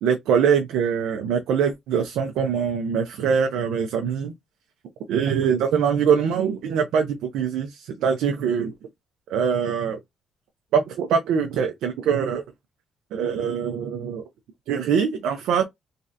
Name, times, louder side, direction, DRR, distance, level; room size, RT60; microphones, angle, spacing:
voice 1, 0.0-4.3 5.1-8.7 9.3-10.0 10.7-12.4 13.1-14.2 14.7-15.6, right 7 dB, 85° right, 0.5 m, -23 dB
3.2 x 2.7 x 2.4 m
cardioid pair, 90°, 0 cm